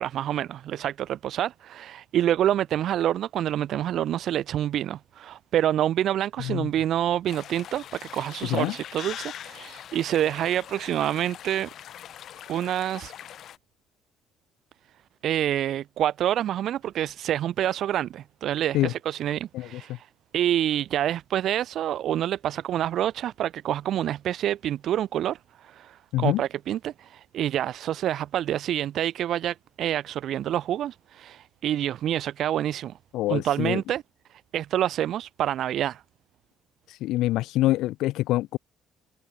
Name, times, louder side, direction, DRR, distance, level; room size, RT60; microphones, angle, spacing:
voice 1, 0.0-11.7 12.5-13.1 15.2-20.1 20.3-32.9 33.3-34.0 34.5-36.0, right 11 dB, 45° right, 1.6 m, -27 dB
sound 1, 7.3-13.6, left 10 dB, 45° left, 4.2 m, -42 dB
voice 2, 33.1-33.8 37.0-38.6, left 16 dB, 70° left, 3.5 m, -25 dB
cardioid pair, 175°, 0 cm